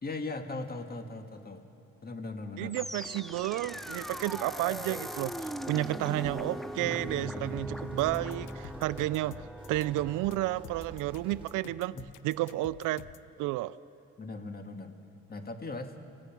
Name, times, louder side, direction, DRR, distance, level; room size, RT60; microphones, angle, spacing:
voice 1, 0.0-1.7 2.0-2.8 11.9-12.1 14.2-15.0 15.3-16.0, left 3 dB, 30° left, 6 dB, 1.8 m, -39 dB
voice 2, 2.6-12.0 12.2-13.1 13.4-13.8, right 16 dB, 90° right, 17 dB, 0.5 m, -31 dB
sound 1, 2.7-11.9, equal, ahead, 0.7 m, -40 dB
Drum kit, 6.2-11.6, right 3 dB, 20° right, 3.9 m, -52 dB
sound 2, 8.0-13.3, left 12 dB, 75° left, 0.6 m, -49 dB
27.0 x 16.0 x 5.9 m, 2.9 s
cardioid pair, 90°, 30 cm